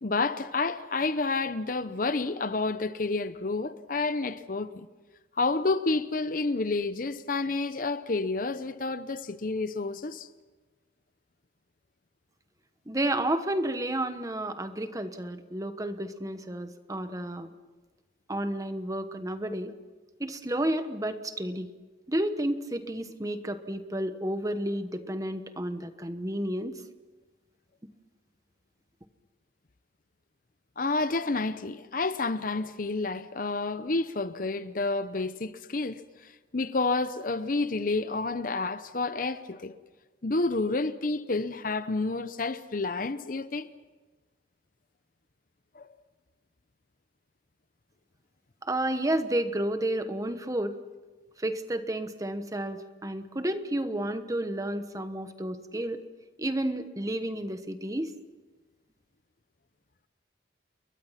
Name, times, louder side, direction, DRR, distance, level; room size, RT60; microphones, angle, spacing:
voice 1, 0.0-4.9 5.4-10.3 30.8-39.8 40.2-43.7 45.7-45.9, left 3 dB, 50° left, 0.8 m, -29 dB
voice 2, 12.9-17.5 18.3-19.7 20.2-21.7 22.1-26.8 48.6-50.8 51.4-56.0 56.4-58.1, right 1 dB, 20° right, 1.2 m, -31 dB
29.5 x 22.5 x 5.9 m
head